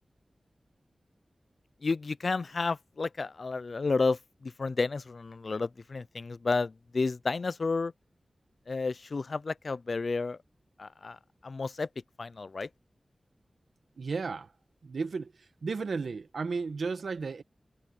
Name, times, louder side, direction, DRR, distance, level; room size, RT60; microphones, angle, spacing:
voice 1, 1.8-7.9 8.7-10.4 10.8-11.2 11.4-11.9 12.2-12.7, left 4 dB, 65° left, 0.5 m, -31 dB
voice 2, 14.0-14.5 14.8-15.3 15.6-17.4, right 4 dB, 90° right, 1.4 m, -33 dB
wide cardioid pair, 55°, 0 cm